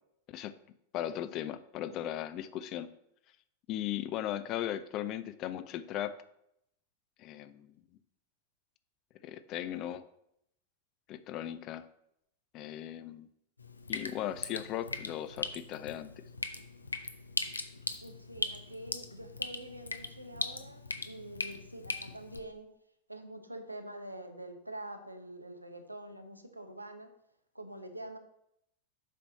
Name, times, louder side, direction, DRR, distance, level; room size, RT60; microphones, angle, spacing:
voice 1, 0.9-2.9 3.7-6.2 7.2-7.8 9.2-10.0 11.1-11.8 12.5-13.3 13.9-16.1, left 11 dB, 35° left, 13 dB, 0.5 m, -37 dB
Drip, 13.6-22.4, left 3 dB, 80° left, 0.7 m, -39 dB
voice 2, 18.0-22.7 23.1-27.1 27.5-28.2, right 1 dB, 85° right, 7 dB, 0.9 m, -46 dB
7.5 x 5.5 x 4.1 m, 0.75 s
figure-of-eight pair, 90°, 0 cm